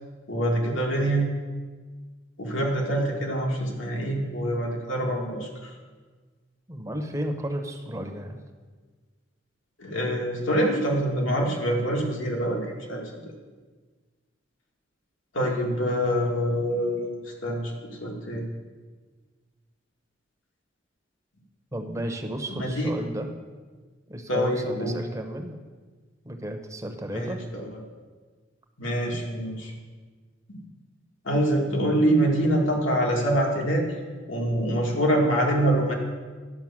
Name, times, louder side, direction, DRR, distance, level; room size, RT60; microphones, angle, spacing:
voice 1, 0.3-1.3 2.4-5.7 9.8-13.3 15.3-17.2 17.4-18.4 22.6-22.9 24.3-24.9 27.1-27.7 28.8-29.7 30.5-30.6 31.2-33.8 34.3-35.9, right 1 dB, 85° left, -1 dB, 2.1 m, -25 dB
voice 2, 6.7-8.4 21.7-23.3 24.1-25.6 26.2-27.4, right 1 dB, 15° right, 5 dB, 0.9 m, -33 dB
11.0 x 5.6 x 7.3 m, 1.4 s
head